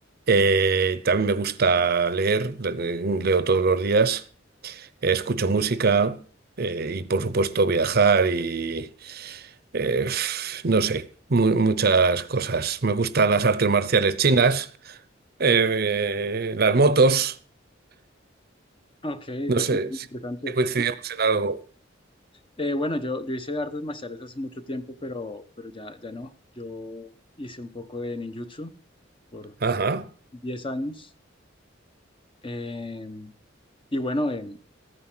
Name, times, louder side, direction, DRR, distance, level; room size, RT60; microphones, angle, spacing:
voice 1, 0.3-4.2 4.6-6.2 6.6-15.0 15.4-17.4 19.5-19.9 20.6-21.6 29.6-30.1, right 4 dB, 55° right, 0.8 m, -22 dB
voice 2, 19.0-20.9 22.6-27.1 27.4-28.7 29.3-29.8 30.4-31.1 32.4-33.3 33.9-34.6, left 1 dB, 30° left, 1.1 m, -32 dB
14.5 x 9.7 x 6.1 m
head